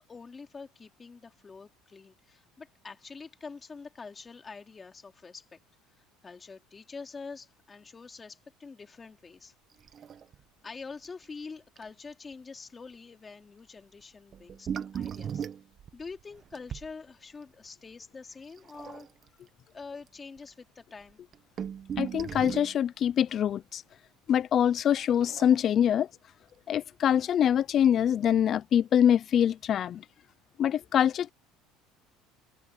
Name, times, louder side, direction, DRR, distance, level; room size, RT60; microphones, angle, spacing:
voice 1, 0.1-5.6 5.9-9.5 10.6-15.5 15.9-19.1 19.7-21.2, left 4 dB, 20° left, 3.1 m, -45 dB
sound 1, 9.8-10.4 10.6-10.7 11.0-11.2 11.8-11.9 14.3-16.9 18.6-19.3 20.1-20.2 20.4-20.5 21.1-22.8 25.0-25.9 27.1-27.2 27.8-27.9, right 8 dB, 35° right, 1.1 m, -38 dB
voice 2, 22.0-23.8 24.3-26.1 26.7-30.0 30.6-31.3, left 9 dB, 40° left, 0.5 m, -24 dB
cardioid pair, 135°, 0 cm